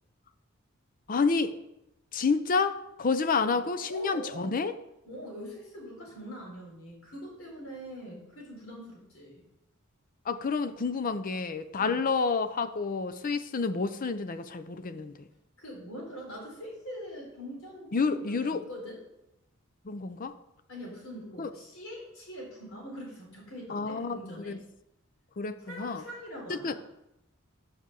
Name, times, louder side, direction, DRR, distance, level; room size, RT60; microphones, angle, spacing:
voice 1, 1.1-1.5 2.1-4.7 10.3-15.3 17.9-18.6 19.8-20.4 21.4-21.5 23.7-24.6 25.4-26.0 26.5-26.7, left 4 dB, 40° left, 12 dB, 0.5 m, -29 dB
voice 2, 3.2-4.6 5.1-9.4 11.8-12.0 15.6-19.0 20.7-24.6 25.7-26.8, equal, 75° left, -2 dB, 3.9 m, -43 dB
9.9 x 5.0 x 6.8 m, 0.88 s
head